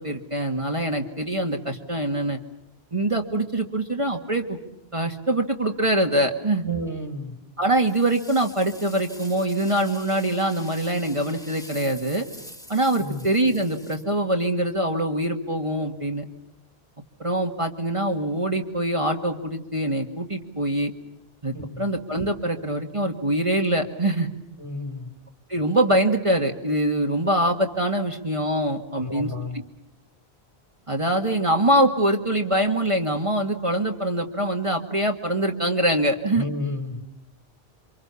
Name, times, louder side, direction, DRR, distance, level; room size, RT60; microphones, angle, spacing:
voice 1, 0.0-2.4 2.9-4.6 4.9-6.6 7.6-12.3 12.7-16.2 17.2-20.9 21.4-24.3 25.5-29.3 30.9-36.5, right 1 dB, 30° right, 3 dB, 1.9 m, -24 dB
voice 2, 6.6-7.4 13.0-13.3 21.5-21.9 24.6-25.1 28.9-29.6 36.4-37.0, left 1 dB, 30° left, 7 dB, 3.7 m, -31 dB
sound 1, 7.9-14.6, equal, 5° left, 2.7 m, -45 dB
28.5 x 25.5 x 7.0 m, 0.89 s
omnidirectional pair, 1.1 m